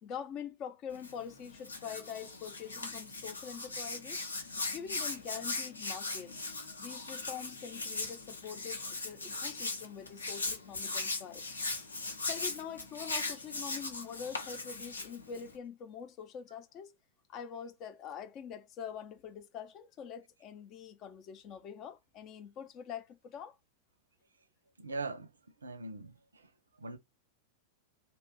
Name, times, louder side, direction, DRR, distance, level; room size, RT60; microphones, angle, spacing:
voice 1, 0.0-4.2 4.7-6.3 6.8-11.5 12.2-16.9 17.3-23.5, left 7 dB, 35° left, 0.5 m, -44 dB
Hands, 0.9-15.6, left 3 dB, 80° left, 0.7 m, -39 dB
voice 2, 24.8-25.3 25.6-26.1 26.8-27.0, right 3 dB, 75° right, 0.5 m, -40 dB
2.9 x 2.3 x 3.2 m
figure-of-eight pair, 90°, 0 cm